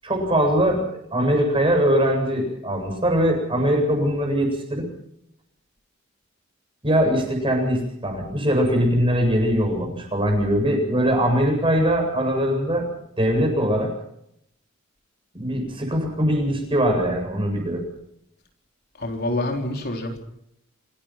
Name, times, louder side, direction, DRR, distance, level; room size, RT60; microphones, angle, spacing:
voice 1, 0.0-4.9 6.8-12.9 13.2-13.9 15.3-17.8, equal, 25° right, 3 dB, 7.8 m, -21 dB
voice 2, 19.0-20.4, left 1 dB, 50° left, 2 dB, 3.9 m, -27 dB
27.0 x 17.5 x 5.9 m, 0.75 s
head